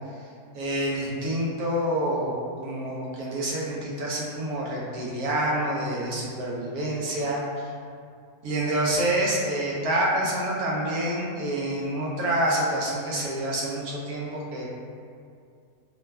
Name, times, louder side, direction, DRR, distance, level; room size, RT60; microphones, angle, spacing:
voice 1, 0.5-7.4 8.4-14.7, right 1 dB, 80° right, -4 dB, 1.1 m, -27 dB
3.1 x 2.2 x 2.2 m, 2.3 s
omnidirectional pair, 1.6 m